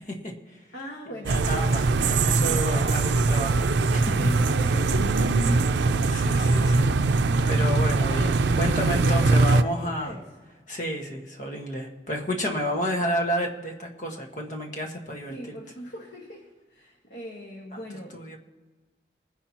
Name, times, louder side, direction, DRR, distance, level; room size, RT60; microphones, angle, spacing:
voice 1, 0.1-0.6 1.2-4.3 6.1-6.9 7.4-10.1 10.7-15.6 18.1-18.4, equal, 45° left, 1 dB, 1.6 m, -31 dB
voice 2, 0.7-1.8 2.4-2.8 4.0-6.0 6.5-8.1 9.0-10.3 15.3-18.2, equal, 75° left, -1 dB, 1.6 m, -40 dB
sound 1, 1.3-9.6, right 3 dB, 85° right, 0.5 m, -22 dB
21.0 x 10.0 x 3.0 m, 1.3 s
head